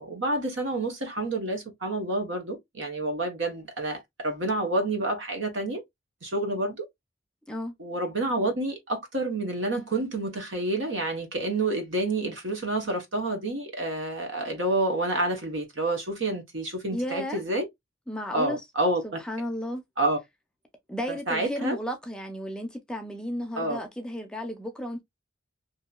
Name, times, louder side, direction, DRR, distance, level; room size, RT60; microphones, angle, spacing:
voice 1, 0.0-5.8 6.2-6.8 7.8-17.7 18.3-19.2 20.0-20.2 21.1-21.8 23.6-23.8, right 2 dB, 70° right, 1.0 m, -28 dB
voice 2, 16.9-17.4 18.1-18.6 19.0-19.8 20.9-25.0, equal, 5° left, 0.6 m, -33 dB
2.8 x 2.6 x 2.2 m
head